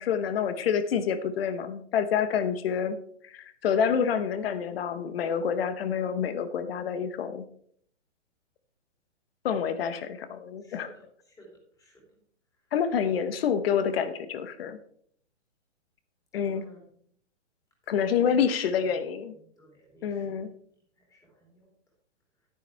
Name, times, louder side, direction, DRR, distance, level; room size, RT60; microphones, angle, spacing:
voice 1, 0.0-3.0 3.3-7.5 9.4-10.9 12.7-14.8 16.3-16.6 17.9-19.3 20.0-20.5, left 7 dB, 50° left, 11 dB, 1.2 m, -27 dB
voice 2, 10.6-11.5 11.8-12.0 16.5-16.8 17.8-19.0 19.6-20.5 21.0-21.7, right 1 dB, 10° left, -2 dB, 3.0 m, -53 dB
10.0 x 9.8 x 3.5 m, 0.62 s
hypercardioid pair, 150°, 37 cm